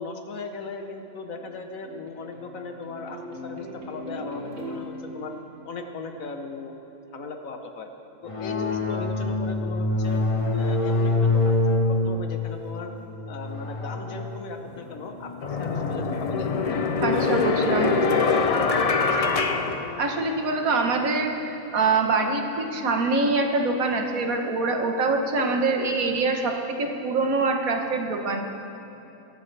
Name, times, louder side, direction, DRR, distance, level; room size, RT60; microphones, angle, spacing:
voice 1, 0.0-5.3 5.6-6.7 7.1-7.9 8.2-10.2 10.5-12.9 13.3-16.5 17.1-19.4, left 3 dB, 75° left, 5 dB, 1.4 m, -37 dB
sound 1, 1.1-6.7, left 1 dB, 60° right, 2.3 m, -40 dB
sound 2, 8.3-16.4, left 2 dB, 25° left, 0.8 m, -26 dB
sound 3, 14.7-14.8 15.4-20.6, left 4 dB, 50° left, 0.4 m, -24 dB
voice 2, 17.0-17.9 20.0-28.4, right 3 dB, 80° right, 3 dB, 1.7 m, -24 dB
22.0 x 12.0 x 3.4 m, 2.9 s
omnidirectional pair, 1.4 m